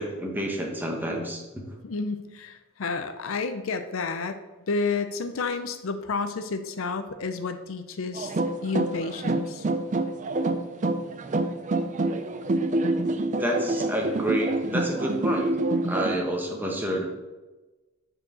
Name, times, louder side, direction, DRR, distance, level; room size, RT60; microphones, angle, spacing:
voice 1, 0.0-1.6 13.4-15.5 15.8-17.1, equal, 10° right, 0 dB, 1.2 m, -29 dB
voice 2, 1.8-4.4 4.7-8.3 8.6-9.7, left 4 dB, 65° left, 9 dB, 0.5 m, -30 dB
sound 1, 8.1-16.2, right 2 dB, 35° right, 0.5 m, -27 dB
6.3 x 4.6 x 6.2 m, 1.1 s
head